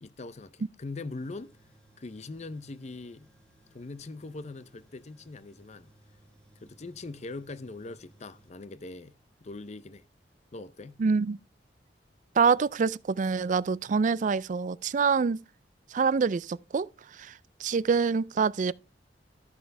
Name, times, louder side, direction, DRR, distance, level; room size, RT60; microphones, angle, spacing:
voice 1, 0.0-1.5 2.0-3.3 3.7-5.9 6.6-9.1 9.4-10.0 10.5-11.0, left 3 dB, 40° left, 0.6 m, -41 dB
Tools, 1.2-8.5, right 1 dB, 5° left, 1.8 m, -61 dB
voice 2, 11.0-11.4 12.4-15.4 15.9-18.7, right 5 dB, 45° right, 0.4 m, -26 dB
13.0 x 6.8 x 3.3 m
head